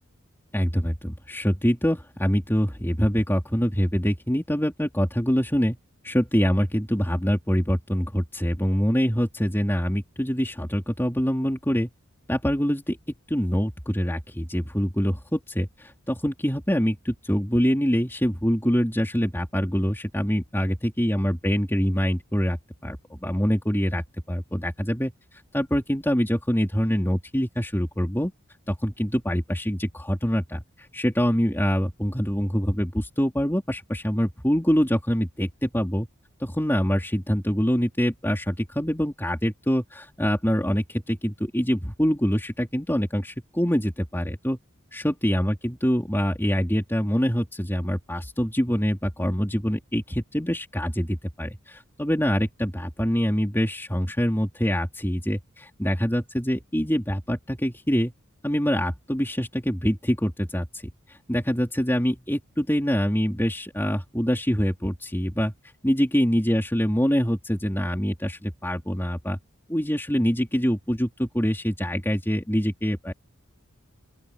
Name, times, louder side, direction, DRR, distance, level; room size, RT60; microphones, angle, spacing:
voice 1, 0.5-5.8 6.0-11.9 12.3-13.0 13.3-25.1 25.5-28.3 28.7-36.1 36.4-44.6 44.9-58.1 58.4-60.8 61.1-65.5 65.8-69.4 69.7-73.1, equal, 10° left, 3.5 m, -25 dB
open air
head